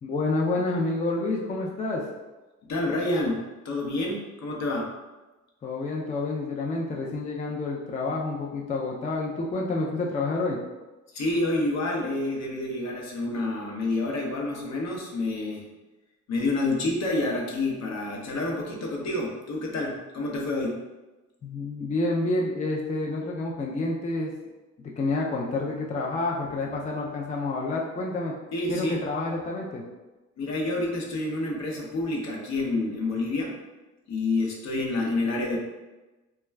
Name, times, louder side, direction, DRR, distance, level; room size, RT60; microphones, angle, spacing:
voice 1, 0.0-2.1 5.6-10.6 21.4-24.3 24.8-28.3 28.7-29.8, left 2 dB, 25° left, -2 dB, 0.4 m, -28 dB
voice 2, 2.6-4.9 11.1-15.7 16.3-20.8 28.5-29.0 30.4-33.5 34.1-35.6, left 2 dB, 60° left, -1 dB, 0.7 m, -28 dB
2.2 x 2.2 x 3.2 m, 1.1 s
cardioid pair, 90°, 30 cm